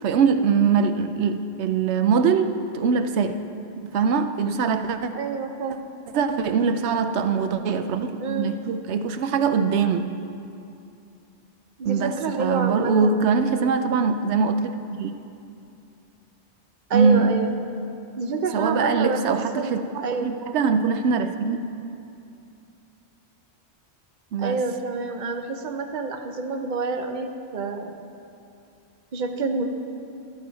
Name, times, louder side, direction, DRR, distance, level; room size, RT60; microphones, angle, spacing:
voice 1, 0.0-3.4 3.8-5.1 6.1-10.2 11.8-12.1 12.4-15.1 16.9-17.4 18.5-19.8 20.2-21.6 24.3-24.6, right 5 dB, 90° right, 9 dB, 0.9 m, -22 dB
voice 2, 5.1-5.9 8.2-8.5 11.8-13.7 16.9-17.5 18.2-20.3 24.4-28.0 29.1-29.6, right 3 dB, 45° right, 5 dB, 0.9 m, -28 dB
13.0 x 12.5 x 4.1 m, 2.6 s
omnidirectional pair, 1.1 m